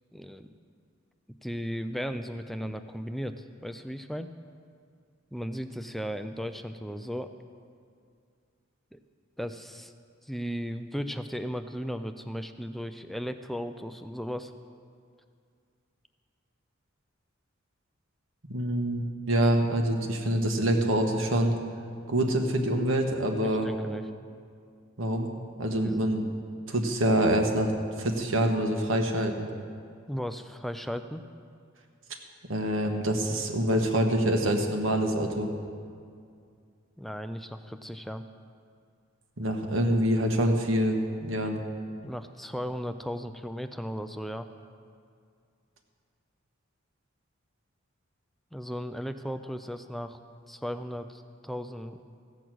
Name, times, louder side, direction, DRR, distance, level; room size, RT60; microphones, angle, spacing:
voice 1, 0.1-0.5 1.4-4.3 5.3-7.3 8.9-9.0 9.4-9.9 10.2-14.5 23.3-24.1 25.7-26.0 30.1-31.2 37.0-38.2 42.0-44.5 48.5-50.2 50.5-52.0, equal, ahead, 9 dB, 0.4 m, -36 dB
voice 2, 18.5-21.5 22.1-23.7 25.0-25.3 25.6-26.3 26.7-27.7 28.0-29.5 32.5-35.5 39.4-41.6, right 1 dB, 70° right, 3 dB, 1.4 m, -26 dB
15.0 x 8.1 x 6.1 m, 2.3 s
head